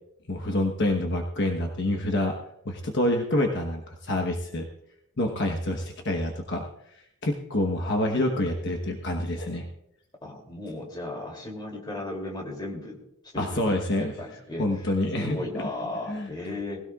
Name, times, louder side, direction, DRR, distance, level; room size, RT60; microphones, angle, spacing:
voice 1, 0.3-2.3 2.6-4.7 5.2-6.6 7.2-9.7 13.4-14.1 14.6-15.4 16.1-16.3, left 1 dB, 50° left, 2 dB, 1.2 m, -27 dB
voice 2, 10.2-13.0 13.3-14.9 15.2-16.8, left 2 dB, 20° left, 0 dB, 2.8 m, -35 dB
19.5 x 16.5 x 2.4 m, 0.78 s
head